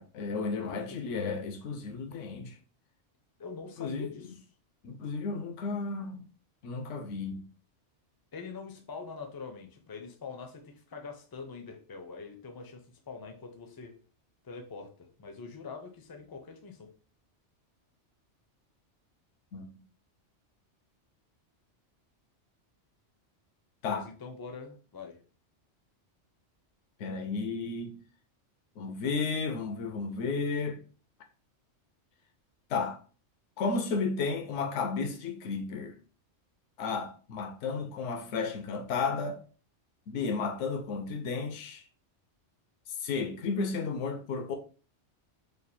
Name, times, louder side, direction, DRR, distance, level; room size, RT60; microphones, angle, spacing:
voice 1, 0.0-2.6 3.8-4.1 4.8-6.2 6.6-7.5 19.5-19.8 23.8-24.1 27.0-28.0 28.8-30.8 32.7-33.0 33.6-36.0 36.8-39.4 40.1-41.8 43.0-44.6, left 4 dB, 80° left, 0.9 m, -33 dB
voice 2, 0.7-1.0 3.4-4.4 8.3-14.0 14.4-16.9 23.9-25.2, left 4 dB, 40° left, 0.3 m, -44 dB
3.3 x 2.3 x 4.1 m
omnidirectional pair, 1.2 m